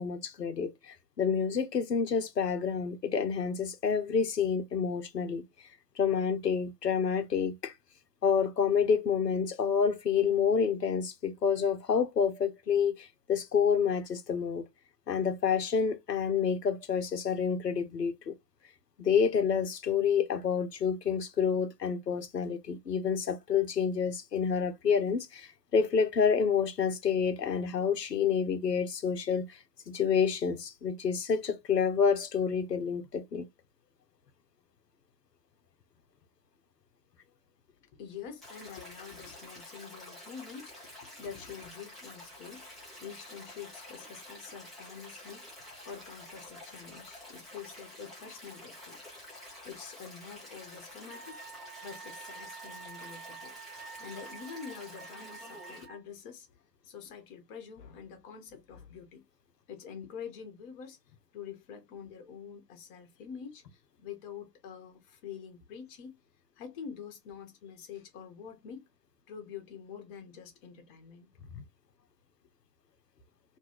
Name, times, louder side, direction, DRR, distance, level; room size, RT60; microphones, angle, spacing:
voice 1, 0.0-5.4 6.0-7.7 8.2-14.7 15.1-18.3 19.0-29.5 29.9-33.5 71.6-71.7, left 6 dB, 80° left, 0.7 m, -28 dB
voice 2, 37.8-49.0 49.6-51.4 51.8-53.5 54.0-56.5 56.8-59.2 59.7-61.0 61.3-66.2 66.6-68.9 69.3-71.3, left 7 dB, 30° left, 0.9 m, -46 dB
Stream, 38.4-55.8, left 1 dB, ahead, 0.4 m, -49 dB
Wind instrument woodwind instrument, 51.1-56.0, right 6 dB, 80° right, 0.9 m, -48 dB
2.7 x 2.3 x 2.8 m
figure-of-eight pair, 100°, 48 cm